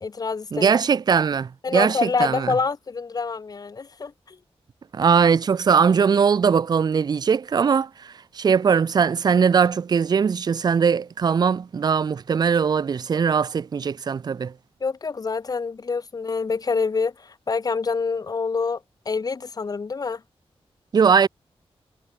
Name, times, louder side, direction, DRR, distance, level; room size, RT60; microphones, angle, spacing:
voice 1, 0.0-0.8 1.6-4.4 14.8-20.2, left 4 dB, 40° left, 0.7 m, -26 dB
voice 2, 0.5-2.5 4.9-14.5 20.9-21.3, right 6 dB, 40° right, 0.4 m, -20 dB
wide cardioid pair, 130°, 10 cm